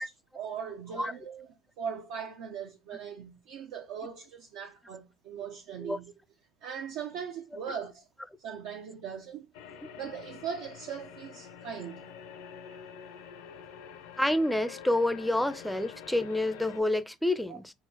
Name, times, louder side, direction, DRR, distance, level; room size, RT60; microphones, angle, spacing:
voice 1, 0.0-1.5 1.8-6.1 6.6-8.1 8.4-9.5 10.0-12.1 17.5-17.6, right 7 dB, 70° right, 0.4 m, -40 dB
sound 1, 9.5-16.8, left 7 dB, 80° left, 0.5 m, -47 dB
voice 2, 14.2-17.7, left 1 dB, 5° left, 0.4 m, -28 dB
3.8 x 2.0 x 2.6 m
hypercardioid pair, 70°, 0 cm